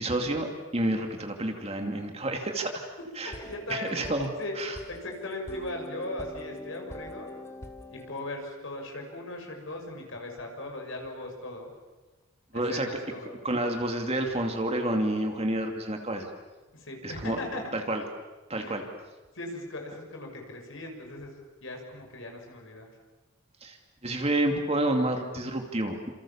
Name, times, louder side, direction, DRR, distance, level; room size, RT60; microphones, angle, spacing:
voice 1, 0.0-2.9 3.2-3.3 3.7-4.3 4.6-4.7 12.5-12.9 13.4-16.3 17.0-17.4 17.7-18.0 18.5-18.8 23.6-23.8 24.0-26.1, right 1 dB, 25° right, 4 dB, 2.6 m, -29 dB
sound 1, 3.2-8.3, left 1 dB, 10° left, 1.7 m, -44 dB
voice 2, 3.4-4.6 4.9-7.3 7.9-11.7 12.5-13.3 16.7-17.6 18.5-18.8 19.3-22.9, left 2 dB, 60° left, 2 dB, 6.3 m, -38 dB
29.0 x 27.5 x 7.3 m, 1.2 s
head